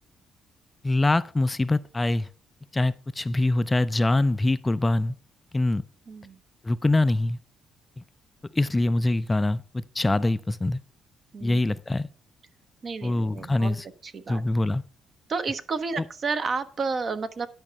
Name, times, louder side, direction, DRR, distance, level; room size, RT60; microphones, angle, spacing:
voice 1, 0.8-2.3 2.7-5.1 5.5-5.8 6.6-7.4 8.5-10.8 11.4-12.1 13.0-13.9 14.3-14.8, left 2 dB, 20° left, 0.4 m, -24 dB
voice 2, 6.1-6.4 11.3-11.7 12.8-13.8 14.0-14.4 15.3-17.5, right 4 dB, 45° right, 1.1 m, -31 dB
11.0 x 5.2 x 5.8 m
cardioid pair, 90°, 0 cm